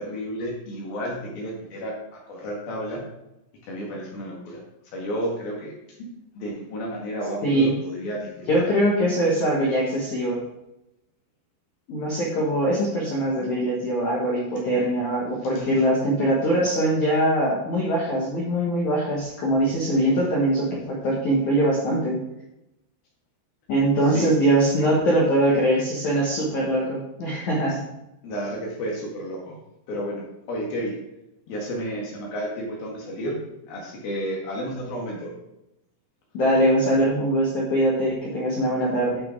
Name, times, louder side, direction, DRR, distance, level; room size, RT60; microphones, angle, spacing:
voice 1, 0.0-3.0 3.6-4.6 4.9-5.7 6.3-8.6 15.5-15.8 24.1-24.3 27.7-27.8 28.2-29.6 29.9-31.0 31.5-35.3, equal, 60° left, -3 dB, 3.2 m, -32 dB
voice 2, 7.4-7.7 8.5-10.4 11.9-22.2 23.7-27.8 36.3-39.2, right 1 dB, 75° left, -4 dB, 1.7 m, -22 dB
11.5 x 6.1 x 3.8 m, 0.89 s
omnidirectional pair, 6.0 m